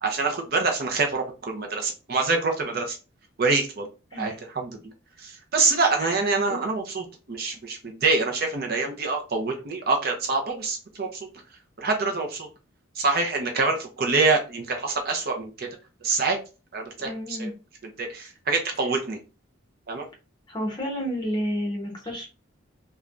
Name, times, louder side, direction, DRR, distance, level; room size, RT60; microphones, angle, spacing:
voice 1, 0.0-3.0 3.4-3.9 4.2-4.9 5.2-11.3 11.8-12.5 13.0-15.7 16.0-16.4 16.7-17.5 18.0-19.2 19.9-20.0, right 3 dB, 45° right, 2 dB, 0.6 m, -26 dB
voice 2, 17.0-17.5 20.5-22.3, equal, 20° left, -1 dB, 0.9 m, -30 dB
3.2 x 2.3 x 2.5 m, 0.31 s
head